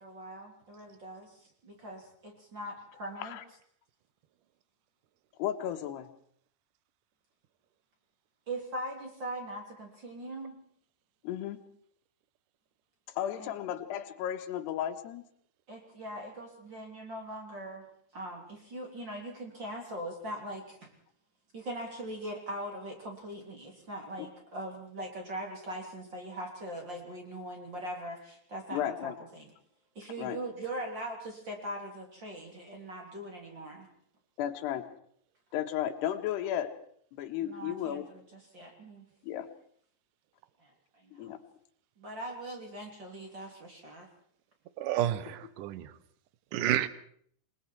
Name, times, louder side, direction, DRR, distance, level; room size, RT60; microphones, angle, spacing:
voice 1, 0.0-3.4 8.5-10.6 13.4-13.5 15.7-17.8 18.1-20.9 21.5-29.5 29.9-33.9 37.4-39.0 40.6-41.3 42.0-44.1, right 1 dB, 30° right, 1 dB, 3.4 m, -41 dB
voice 2, 5.4-6.1 11.2-11.6 13.2-15.2 24.2-24.3 28.7-29.2 30.2-30.4 34.4-34.9 35.5-36.7 37.1-38.1 39.2-39.5 41.1-41.4, left 11 dB, 80° left, 7 dB, 3.4 m, -34 dB
voice 3, 44.8-46.0 46.5-46.9, right 12 dB, 75° right, 15 dB, 2.0 m, -30 dB
29.0 x 20.5 x 4.6 m, 0.63 s
omnidirectional pair, 4.8 m